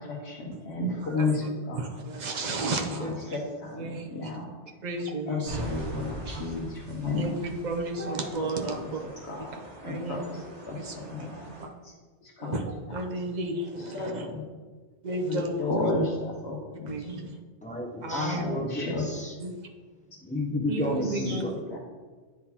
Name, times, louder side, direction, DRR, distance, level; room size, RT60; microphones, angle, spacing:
voice 1, 0.0-1.9 2.9-4.5 5.3-7.4 8.7-8.8 9.3-9.5 9.8-10.2 10.7-11.5 12.2-12.6 13.9-14.4 15.3-17.3 18.1-19.0 21.3-21.4 21.7-21.8, left 2 dB, 80° left, -4 dB, 1.1 m, -32 dB
voice 2, 1.7-3.4 3.8-4.3 4.8-5.6 7.1-9.0 9.4-9.5 9.8-10.2 10.8-11.3 11.6-11.7 12.4-14.3 15.0-15.8 16.9-17.4 18.0-18.4 19.4-19.5 20.7-21.5, right 2 dB, 45° right, 3 dB, 0.7 m, -33 dB
sound 1, 5.4-11.6, equal, 80° right, 1.5 m, -41 dB
voice 3, 17.6-19.4 20.2-21.6, left 1 dB, 10° left, 0 dB, 0.4 m, -32 dB
9.5 x 4.0 x 2.8 m, 1.4 s
omnidirectional pair, 1.1 m